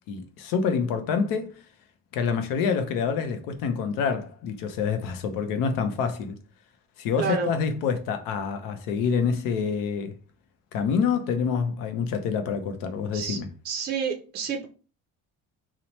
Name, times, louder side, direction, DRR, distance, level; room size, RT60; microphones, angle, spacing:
voice 1, 0.1-1.5 2.1-6.4 7.0-10.1 10.7-13.5, left 6 dB, 80° left, 0.6 m, -27 dB
voice 2, 7.2-7.5 13.1-13.4 13.6-14.7, right 6 dB, 30° right, 0.4 m, -29 dB
2.8 x 2.1 x 2.9 m
cardioid pair, 140°, 33 cm